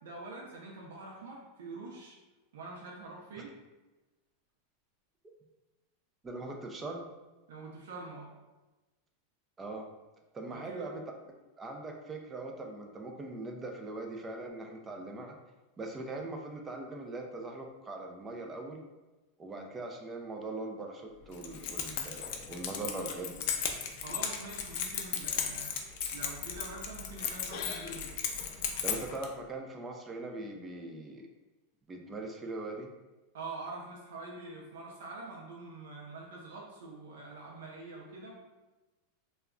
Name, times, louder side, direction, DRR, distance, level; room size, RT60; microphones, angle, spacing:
voice 1, 0.0-2.2 2.5-3.5 7.5-8.3 10.5-10.9 24.0-25.7 26.1-28.1 33.3-38.3, right 3 dB, 85° right, -3 dB, 0.6 m, -45 dB
voice 2, 6.2-7.1 9.6-9.9 10.3-11.0 11.6-15.4 15.8-18.8 19.4-23.4 28.8-31.3 31.9-32.9, right 2 dB, 15° right, 2 dB, 0.4 m, -41 dB
Keys jangling, 21.3-29.3, left 7 dB, 55° left, 0.4 m, -36 dB
2.3 x 2.1 x 3.6 m, 1.1 s
supercardioid pair, 145°, 0 cm